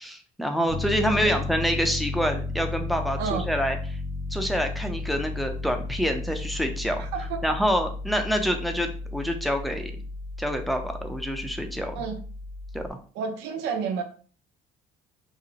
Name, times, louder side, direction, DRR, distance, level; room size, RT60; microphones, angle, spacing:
voice 1, 0.0-3.8 4.3-7.0 7.4-9.9 10.4-12.0 12.7-12.8, equal, ahead, 5 dB, 0.5 m, -27 dB
Piano, 0.7-12.9, left 2 dB, 30° right, 0.7 m, -34 dB
voice 2, 3.2-3.5 7.0-7.4 11.9-12.2 13.1-14.0, right 6 dB, 90° right, 6 dB, 0.6 m, -30 dB
2.8 x 2.0 x 3.9 m, 0.41 s
cardioid pair, 110°, 17 cm